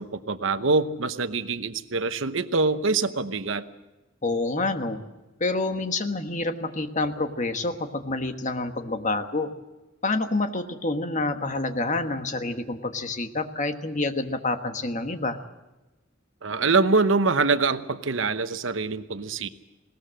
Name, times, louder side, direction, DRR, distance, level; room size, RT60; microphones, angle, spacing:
voice 1, 0.0-3.6 16.4-19.5, right 3 dB, 75° right, 12 dB, 0.9 m, -24 dB
voice 2, 4.2-5.0 5.4-9.5 10.0-15.4, left 2 dB, 40° left, 7 dB, 1.4 m, -28 dB
20.5 x 18.5 x 7.6 m, 1.1 s
head